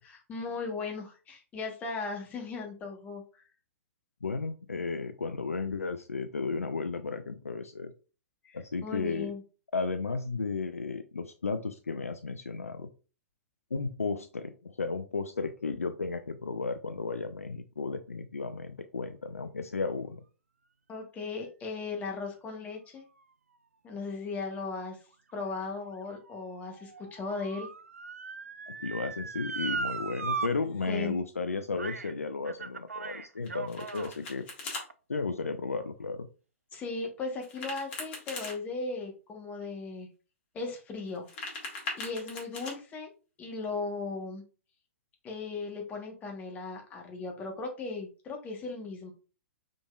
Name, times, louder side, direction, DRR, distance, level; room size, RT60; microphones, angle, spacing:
voice 1, 0.0-3.5 8.5-9.4 20.9-23.0 23.8-25.0 25.3-27.7 30.9-31.2 36.7-40.1 40.5-41.3 41.9-43.1 43.4-44.4 45.2-49.1, left 3 dB, 20° left, 2 dB, 1.2 m, -37 dB
voice 2, 4.2-7.9 8.5-9.3 9.7-12.9 13.7-20.2 28.7-34.4 35.1-36.3, left 4 dB, 75° left, 9 dB, 0.4 m, -34 dB
Motor vehicle (road) / Siren, 25.3-30.5 30.8-30.9 31.8-32.1 32.5-34.1 34.8-34.9, right 4 dB, 75° right, 0.4 m, -38 dB
Domestic sounds home sounds, 33.4-34.8 37.4-38.6 41.1-42.7, left 3 dB, 45° left, 1.7 m, -40 dB
5.0 x 3.8 x 2.4 m, 0.35 s
figure-of-eight pair, 110°, 8 cm